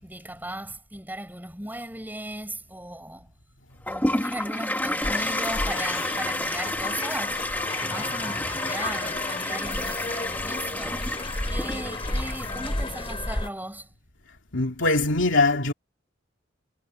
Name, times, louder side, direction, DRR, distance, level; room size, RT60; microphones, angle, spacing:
voice 1, 0.0-3.3 3.9-7.5 7.8-11.1 11.5-13.9, right 1 dB, 10° right, 7.1 m, -37 dB
Toilet flush, 3.9-13.1, left 1 dB, 10° left, 1.3 m, -30 dB
sound 1, 5.0-13.5, left 2 dB, 30° left, 2.5 m, -33 dB
voice 2, 14.5-15.7, left 2 dB, 75° left, 2.6 m, -22 dB
head